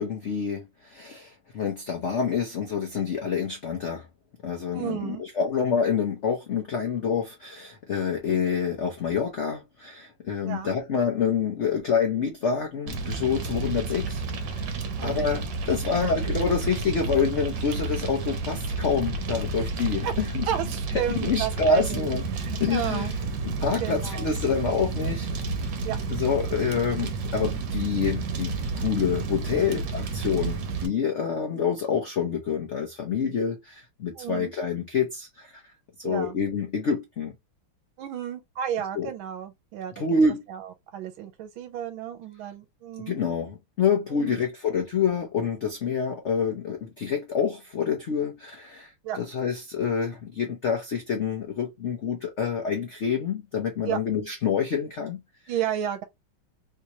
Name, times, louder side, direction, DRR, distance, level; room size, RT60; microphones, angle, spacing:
voice 1, 0.0-4.1 4.4-14.7 15.0-20.5 21.2-22.2 22.6-23.1 23.4-25.3 26.1-35.6 36.0-37.3 38.9-39.1 40.0-40.4 43.1-55.2, left 6 dB, 75° left, 0.6 m, -27 dB
voice 2, 4.7-5.2 10.4-10.8 15.0-15.2 19.6-19.7 20.0-20.1 20.5-23.1 23.8-24.3 25.8-26.0 34.1-34.5 36.0-36.4 38.0-40.0 40.5-43.2 44.1-44.4 49.0-49.2 53.9-54.0 55.5-56.0, right 10 dB, 85° right, 1.4 m, -32 dB
Fire, 12.9-30.9, right 4 dB, 70° right, 1.4 m, -31 dB
3.5 x 2.8 x 2.9 m
omnidirectional pair, 2.2 m